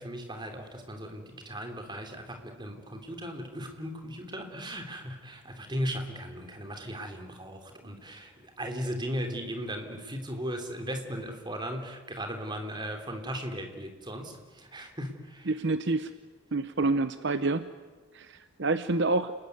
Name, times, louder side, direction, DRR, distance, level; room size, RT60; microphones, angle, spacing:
voice 1, 0.0-15.5, equal, 20° right, 5 dB, 3.3 m, -37 dB
voice 2, 15.5-16.1 16.5-17.6 18.1-19.3, right 3 dB, 55° right, 11 dB, 0.8 m, -27 dB
29.0 x 20.5 x 9.5 m, 1.4 s
head